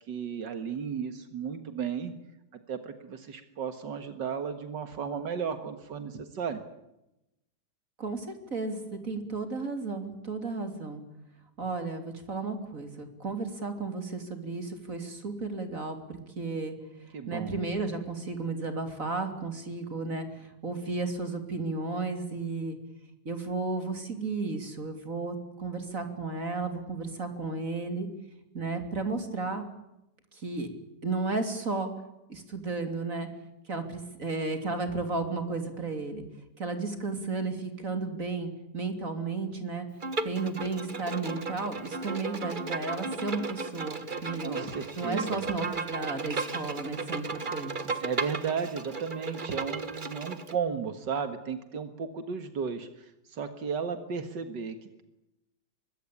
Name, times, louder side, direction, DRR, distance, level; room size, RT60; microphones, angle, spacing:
voice 1, 0.1-2.1 2.7-6.6 17.1-17.6 44.4-45.4 48.0-55.0, right 6 dB, 85° right, 9 dB, 2.3 m, -34 dB
voice 2, 8.0-11.0 11.6-16.7 17.2-22.8 23.3-28.1 28.5-29.6 30.3-30.7 31.0-31.9 32.3-33.3 33.7-36.2 36.6-39.9 40.2-44.7 45.0-47.7, right 3 dB, 50° right, 7 dB, 3.6 m, -33 dB
Bowed string instrument, 40.0-50.5, right 3 dB, 30° right, 1.5 m, -35 dB
24.5 x 22.0 x 8.7 m, 0.89 s
omnidirectional pair, 1.9 m